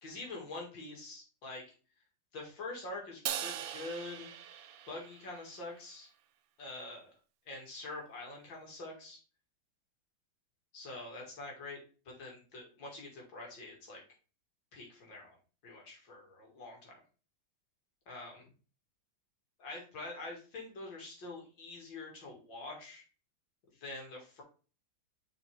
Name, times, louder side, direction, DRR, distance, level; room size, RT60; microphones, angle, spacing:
voice 1, 0.0-1.6 2.3-4.3 4.9-6.1 6.6-7.1 7.5-9.2 10.7-11.8 12.1-14.0 14.7-15.4 15.6-17.0 18.1-18.5 19.6-23.0 23.8-24.4, left 2 dB, 75° left, -1 dB, 2.9 m, -45 dB
Crash cymbal, 3.3-5.6, right 10 dB, 75° right, 0.8 m, -40 dB
6.3 x 4.6 x 3.4 m, 0.36 s
omnidirectional pair, 2.1 m